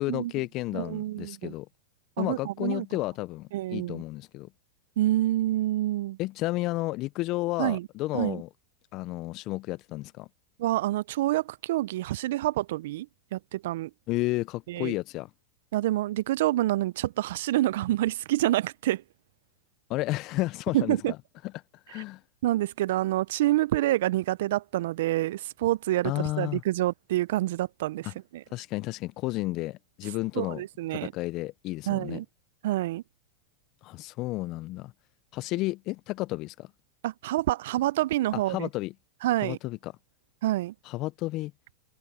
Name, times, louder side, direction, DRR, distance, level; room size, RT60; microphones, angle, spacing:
voice 1, 0.0-1.7 2.2-4.5 6.2-8.5 8.9-10.3 14.1-15.3 19.9-21.2 21.5-22.2 26.0-26.6 28.0-28.1 28.5-30.6 30.9-32.2 33.8-34.9 35.3-36.7 38.3-38.9 39.4-39.9 40.8-41.5, left 19 dB, 45° left, 0.4 m, -32 dB
voice 2, 0.7-1.5 2.2-2.9 3.5-4.0 5.0-6.2 7.6-7.9 8.1-8.4 10.6-13.1 13.3-13.9 14.7-14.9 15.7-19.0 20.7-21.1 22.0-22.1 22.4-28.1 28.3-28.4 30.4-31.1 31.9-32.3 32.6-33.0 37.0-38.7 39.2-39.6 40.4-40.7, right 15 dB, 70° right, 0.3 m, -27 dB
hypercardioid pair, 120°, 0 cm